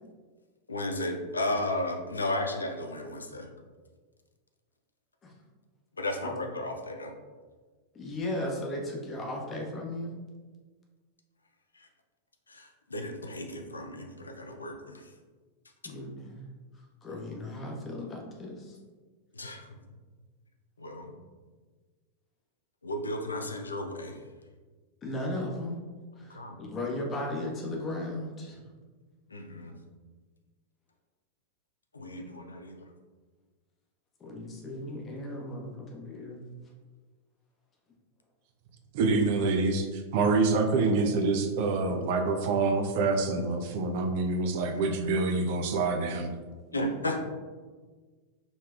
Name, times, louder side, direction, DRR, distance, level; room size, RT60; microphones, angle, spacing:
voice 1, 0.7-3.5 6.0-7.1 11.7-11.9 12.5-15.1 15.8-15.9 19.3-20.0 20.8-21.2 22.8-24.2 26.3-26.6 29.3-29.8 31.9-32.9 46.7-47.2, left 1 dB, 75° left, 4 dB, 0.4 m, -34 dB
voice 2, 7.9-10.2 15.8-16.5 16.7-18.8 25.0-25.8 26.2-28.6 34.2-36.4, left 1 dB, 25° left, -1 dB, 0.9 m, -36 dB
voice 3, 38.9-46.3, right 3 dB, 50° right, 4 dB, 0.5 m, -26 dB
5.1 x 3.2 x 2.4 m, 1.4 s
figure-of-eight pair, 90°, 0 cm